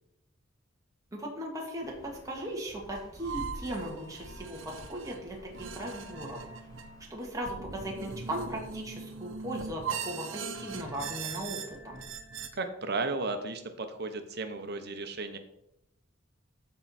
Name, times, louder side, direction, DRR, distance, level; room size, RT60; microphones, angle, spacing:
voice 1, 1.1-6.4 7.1-12.0, right 1 dB, 20° right, -2 dB, 1.8 m, -38 dB
sound 1, 1.8-7.2, equal, 20° left, 0.9 m, -50 dB
sound 2, 3.2-12.5, right 6 dB, 80° right, 0.9 m, -40 dB
voice 2, 12.5-15.4, right 3 dB, 55° right, 7 dB, 1.0 m, -34 dB
14.0 x 4.7 x 4.2 m, 0.83 s
head